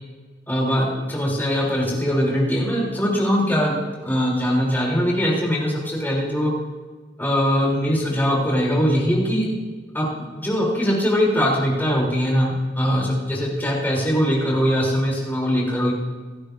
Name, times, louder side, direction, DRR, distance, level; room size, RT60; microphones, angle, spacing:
voice 1, 0.5-3.7 4.0-6.5 7.2-9.5 9.9-10.1 10.3-15.9, equal, 10° left, -4 dB, 3.5 m, -21 dB
28.5 x 9.8 x 2.7 m, 1.4 s
head